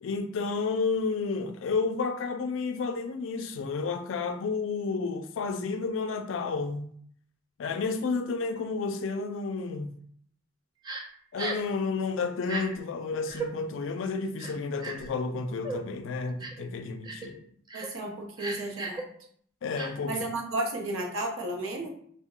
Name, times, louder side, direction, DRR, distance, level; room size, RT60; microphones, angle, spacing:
voice 1, 0.0-6.9 7.6-9.9 11.3-17.4 19.6-20.1, left 4 dB, 70° left, 0.3 m, -31 dB
Crying sobbing, 10.8-11.0 11.4-11.7 12.4-12.6 13.3-13.5 14.4-15.1 15.6-15.8 16.4-16.6 17.0-17.3 17.7-17.9 18.4-19.0 19.7-19.9, right 3 dB, 20° right, 0.3 m, -35 dB
voice 2, 17.7-19.1 20.1-21.9, right 2 dB, 85° right, 0.6 m, -33 dB
2.2 x 2.1 x 3.6 m
head